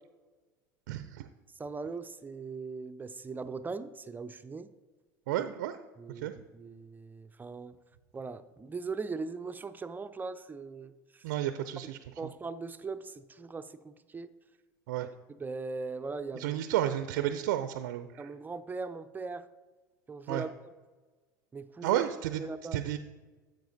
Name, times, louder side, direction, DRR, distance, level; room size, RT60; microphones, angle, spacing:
voice 1, 0.9-1.2 5.3-5.7 6.2-6.3 11.2-12.0 14.9-15.1 16.3-18.3 20.3-20.4 21.8-22.4 22.7-23.0, right 12 dB, 75° right, 10 dB, 0.4 m, -31 dB
voice 2, 1.6-4.7 5.3-5.5 6.0-7.8 8.1-10.9 12.2-14.3 15.4-16.6 16.9-17.0 18.2-19.5 20.1-20.7 21.5-22.1 22.4-22.8, right 4 dB, 20° right, 11 dB, 0.5 m, -39 dB
10.0 x 7.5 x 2.7 m, 1.3 s
hypercardioid pair, 80°, 10 cm